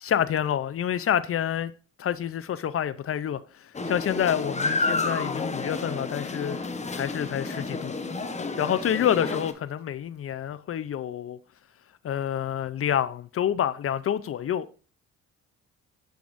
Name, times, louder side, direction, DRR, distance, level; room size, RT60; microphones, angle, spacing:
voice 1, 0.0-1.7 2.0-6.6 6.9-7.9 8.6-11.4 12.0-14.7, left 9 dB, 50° left, 0.6 m, -28 dB
sound 1, 3.7-9.5, left 3 dB, 25° left, 1.0 m, -30 dB
7.8 x 6.8 x 2.6 m
cardioid pair, 90°, 30 cm